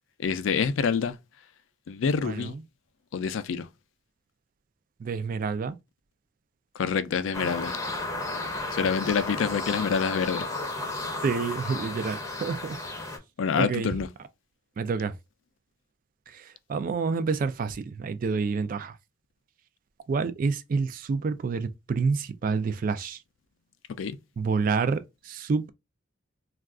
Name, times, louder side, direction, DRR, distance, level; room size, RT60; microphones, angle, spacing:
voice 1, 0.2-1.2 1.9-2.5 3.1-3.7 6.8-7.8 8.7-10.5 13.4-14.1 24.0-24.2, left 6 dB, 85° left, 0.4 m, -27 dB
voice 2, 2.2-2.6 5.0-5.8 11.2-12.8 13.6-13.9 14.8-15.1 16.3-19.0 20.1-23.2 24.4-25.7, right 4 dB, 45° right, 0.3 m, -28 dB
sound 1, 7.3-13.2, left 2 dB, 15° left, 0.6 m, -33 dB
2.3 x 2.3 x 3.5 m
head